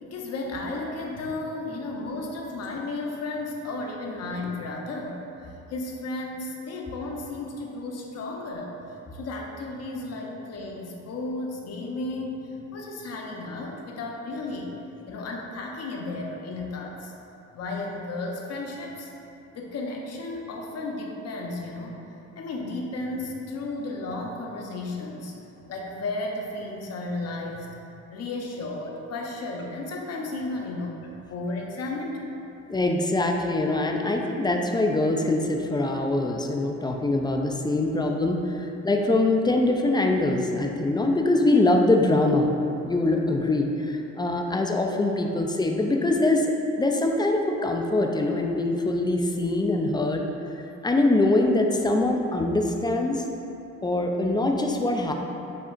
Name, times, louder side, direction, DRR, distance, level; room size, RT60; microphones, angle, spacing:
voice 1, 0.0-5.2 5.7-8.7 9.1-14.7 15.1-17.1 17.5-19.1 19.5-22.0 22.4-25.3 25.7-27.7 28.1-31.0 31.3-32.2, left 2 dB, 55° left, 0 dB, 0.7 m, -33 dB
voice 2, 32.7-46.5 46.8-50.2 50.8-53.2 53.8-55.1, left 2 dB, 15° left, 2 dB, 0.3 m, -23 dB
7.3 x 2.8 x 2.5 m, 2.8 s
cardioid pair, 90°, 30 cm